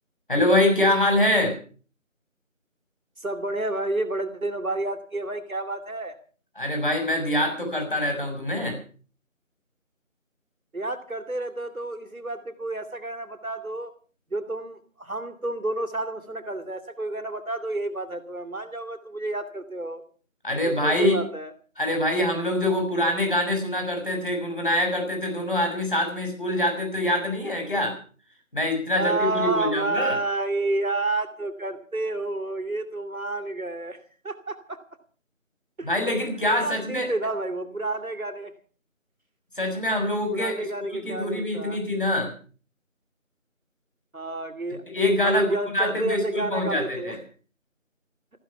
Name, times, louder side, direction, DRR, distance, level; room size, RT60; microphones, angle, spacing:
voice 1, 0.3-1.6 6.6-8.8 20.4-21.2 21.8-28.0 28.5-30.2 35.8-37.1 39.6-40.5 40.8-42.3 44.9-47.2, left 1 dB, 40° left, 4 dB, 6.4 m, -24 dB
voice 2, 3.2-6.2 10.7-13.9 14.3-20.0 20.6-21.5 28.9-34.0 34.2-34.8 35.8-35.9 36.6-38.5 40.3-41.8 44.1-44.8 45.2-47.2, right 2 dB, 80° right, 9 dB, 3.0 m, -30 dB
16.0 x 15.0 x 5.8 m, 0.41 s
figure-of-eight pair, 175°, 41 cm